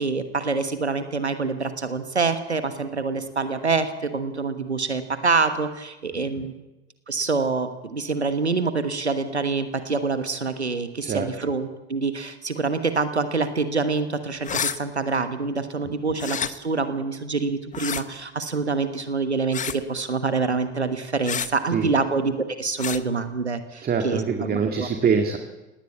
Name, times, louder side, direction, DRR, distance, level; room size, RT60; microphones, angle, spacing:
voice 1, 0.0-6.5 7.1-24.9, right 4 dB, 85° right, 10 dB, 1.3 m, -26 dB
voice 2, 6.2-6.5 11.0-11.3 15.8-16.0 21.7-21.9 23.8-25.4, right 6 dB, 30° right, 5 dB, 2.0 m, -25 dB
sound 1, 14.4-14.8 16.2-16.5 17.7-18.0 19.5-19.8 21.2-21.5 22.8-23.0, left 8 dB, 25° left, 1.1 m, -28 dB
19.0 x 18.5 x 8.5 m, 1.1 s
figure-of-eight pair, 70°, 32 cm